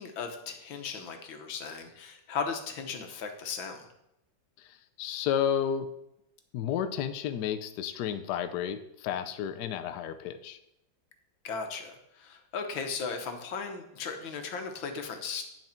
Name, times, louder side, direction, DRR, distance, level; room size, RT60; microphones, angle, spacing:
voice 1, 0.0-3.9 11.4-15.5, left 5 dB, 90° left, 5 dB, 1.8 m, -37 dB
voice 2, 4.6-5.9 6.5-10.6, left 9 dB, 70° left, 9 dB, 1.1 m, -32 dB
9.0 x 6.1 x 4.4 m, 0.83 s
omnidirectional pair, 2.1 m